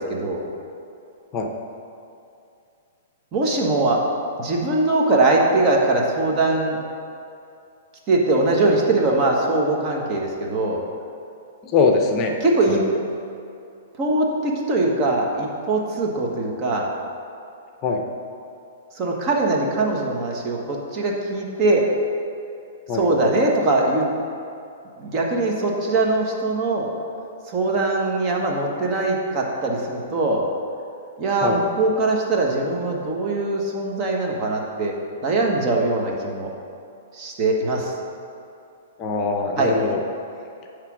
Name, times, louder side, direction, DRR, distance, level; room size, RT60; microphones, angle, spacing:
voice 1, 0.1-0.4 3.3-4.0 4.4-6.8 8.1-10.8 12.4-12.8 14.0-16.9 19.0-21.8 22.9-24.0 25.0-26.9 27.5-30.4 31.2-34.9 35.2-36.5 37.1-37.9 39.6-39.7, right 2 dB, 30° right, -1 dB, 1.2 m, -21 dB
voice 2, 11.7-12.3 12.7-12.8 17.8-18.0 22.9-23.0 31.4-31.6 39.0-40.0, left 4 dB, 30° left, 2 dB, 0.7 m, -21 dB
9.8 x 3.3 x 6.1 m, 2.6 s
hypercardioid pair, 140°, 0 cm